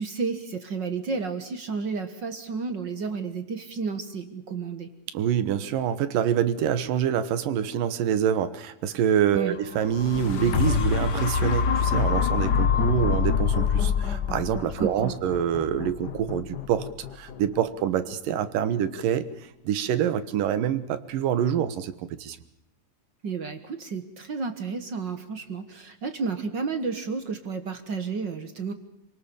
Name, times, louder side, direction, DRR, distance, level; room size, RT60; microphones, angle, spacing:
voice 1, 0.0-4.9 9.3-9.6 14.8-15.1 23.2-28.7, right 4 dB, 50° right, 9 dB, 1.5 m, -31 dB
voice 2, 5.1-16.9 17.1-19.3 19.6-21.9 22.2-22.4, right 9 dB, 85° right, 13 dB, 2.9 m, -26 dB
sound 1, 9.7-17.8 18.3-18.4, left 6 dB, 85° left, 0.9 m, -25 dB
27.0 x 19.0 x 7.0 m, 0.87 s
omnidirectional pair, 3.8 m